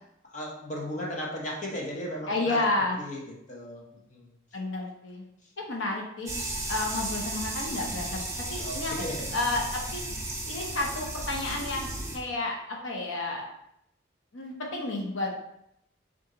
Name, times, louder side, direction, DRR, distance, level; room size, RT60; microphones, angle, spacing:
voice 1, 0.3-2.6 3.0-3.8 4.1-4.3 8.6-9.3, equal, 35° left, -3 dB, 0.8 m, -36 dB
voice 2, 2.3-3.0 4.5-5.2 5.6-6.3 6.7-8.9 9.3-10.0 10.5-13.4 14.3-15.4, left 2 dB, 75° left, 0 dB, 0.9 m, -31 dB
sound 1, 6.3-12.2, right 1 dB, 15° right, 0.7 m, -35 dB
4.3 x 2.5 x 3.8 m, 0.77 s
head